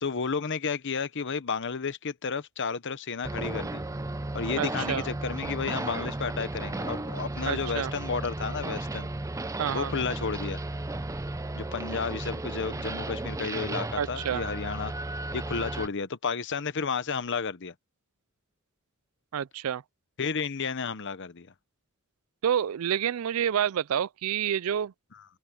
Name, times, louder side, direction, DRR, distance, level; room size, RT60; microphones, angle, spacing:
voice 1, 0.0-3.8 4.3-9.1 9.7-10.6 11.5-14.9 15.3-17.7 20.2-21.5 25.1-25.2, left 5 dB, 60° left, 1.0 m, -32 dB
sound 1, 3.2-15.9, right 2 dB, 15° right, 0.6 m, -34 dB
voice 2, 4.6-5.1 7.5-7.9 9.6-9.9 14.0-14.4 19.3-19.8 22.4-24.9, right 9 dB, 90° right, 0.4 m, -28 dB
head